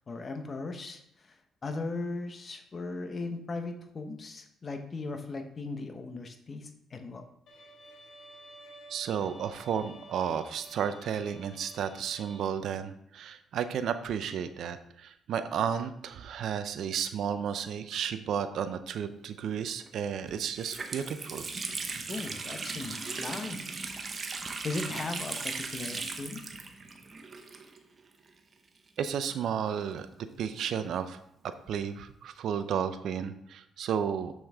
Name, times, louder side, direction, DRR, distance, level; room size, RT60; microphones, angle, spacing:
voice 1, 0.1-1.4 1.6-7.2 22.1-23.6 24.6-26.4, left 3 dB, 40° left, 6 dB, 1.0 m, -38 dB
Bowed string instrument, 7.5-12.5, right 1 dB, 65° left, 1.8 m, -51 dB
voice 2, 8.9-21.4 29.0-30.1 30.4-31.2 31.7-34.3, right 8 dB, 70° right, 11 dB, 0.5 m, -33 dB
Water tap faucet, 19.8-19.9 20.3-28.0 28.3-28.4 29.2-30.7, right 4 dB, 40° right, 0.9 m, -38 dB
6.5 x 6.1 x 3.5 m, 0.75 s
cardioid pair, 90°, 0 cm